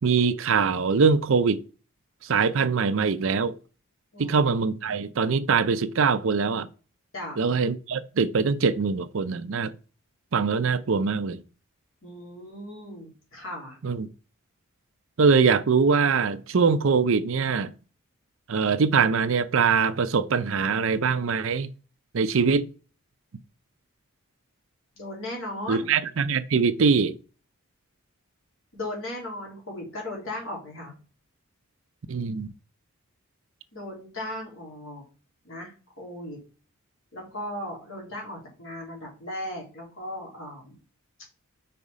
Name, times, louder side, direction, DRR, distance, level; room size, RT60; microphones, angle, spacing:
voice 1, 0.0-1.6 2.2-3.6 4.2-6.7 7.4-9.7 10.3-11.4 13.8-14.1 15.2-17.7 18.5-21.7 22.1-22.7 25.7-27.2 32.1-32.5, right 5 dB, 65° right, 0.5 m, -23 dB
voice 2, 12.0-13.8 25.0-25.9 28.7-30.9 33.7-35.0 35.4-36.4 37.1-40.8, left 1 dB, 65° left, 3.2 m, -37 dB
5.5 x 4.2 x 4.9 m
head